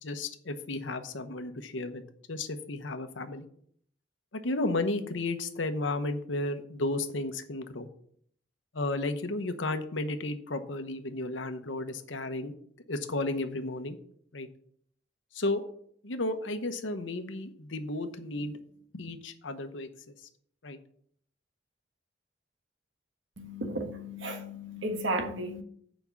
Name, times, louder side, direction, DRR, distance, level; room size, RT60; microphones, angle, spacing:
voice 1, 0.0-2.0 2.3-3.5 4.3-7.9 8.7-12.5 12.9-14.0 14.3-14.5 15.3-15.6 16.0-18.6 18.9-19.9 20.6-20.8, left 2 dB, 85° left, 8 dB, 1.0 m, -33 dB
voice 2, 23.4-25.6, right 1 dB, 85° right, 5 dB, 1.6 m, -34 dB
7.1 x 5.2 x 7.1 m, 0.64 s
head